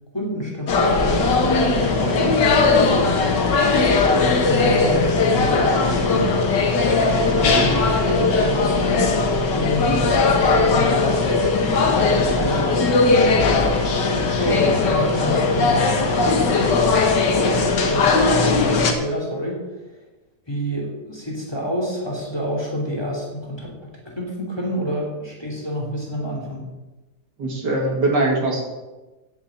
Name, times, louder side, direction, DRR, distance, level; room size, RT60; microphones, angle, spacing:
voice 1, 0.1-6.4 7.1-11.3 11.9-13.0 13.7-16.0 16.3-16.7 17.0-19.8 20.5-26.7, equal, 15° left, -2 dB, 2.8 m, -29 dB
sound 1, 0.7-18.9, left 4 dB, 80° left, 1.9 m, -19 dB
sound 2, 1.2-17.1, right 3 dB, 60° right, 1.8 m, -33 dB
voice 2, 2.0-2.3 27.4-28.6, right 2 dB, 75° right, 0 dB, 2.8 m, -22 dB
8.6 x 7.1 x 8.7 m, 1.1 s
omnidirectional pair, 1.8 m